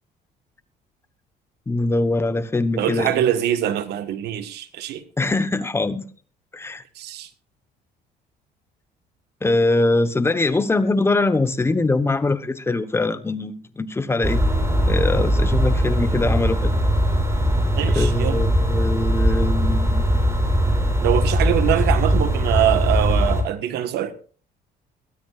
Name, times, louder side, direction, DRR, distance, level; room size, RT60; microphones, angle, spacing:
voice 1, 1.7-3.2 5.2-6.0 6.5-6.8 9.4-14.4 14.9-16.7 17.8-20.2 20.5-21.0, left 2 dB, 15° left, 1.0 m, -22 dB
voice 2, 2.8-5.0 7.0-7.3 17.7-18.4 21.0-24.1, right 11 dB, 80° right, 1.4 m, -23 dB
sound 1, 14.2-23.4, equal, 15° right, 4.0 m, -20 dB
22.0 x 13.5 x 2.4 m
cardioid pair, 110°, 17 cm